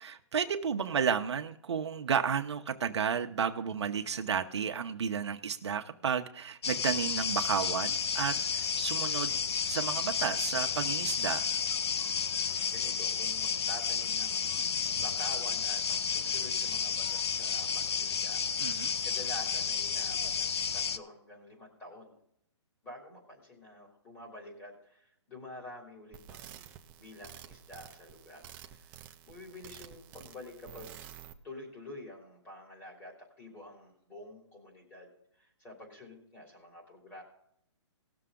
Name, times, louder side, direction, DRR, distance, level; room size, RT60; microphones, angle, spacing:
voice 1, 0.0-9.4 9.7-11.5 18.6-18.9, right 7 dB, 65° right, 5 dB, 0.9 m, -32 dB
sound 1, 6.6-21.0, left 6 dB, 60° left, 0.8 m, -31 dB
voice 2, 12.3-18.4 19.0-22.2 22.8-26.7 27.0-31.0 31.4-35.1 35.4-37.2, left 1 dB, 15° left, -2 dB, 3.2 m, -48 dB
sound 2, 26.1-31.3, right 10 dB, 10° right, 0.4 m, -50 dB
19.0 x 6.9 x 3.7 m, 0.71 s
hypercardioid pair, 160°, 16 cm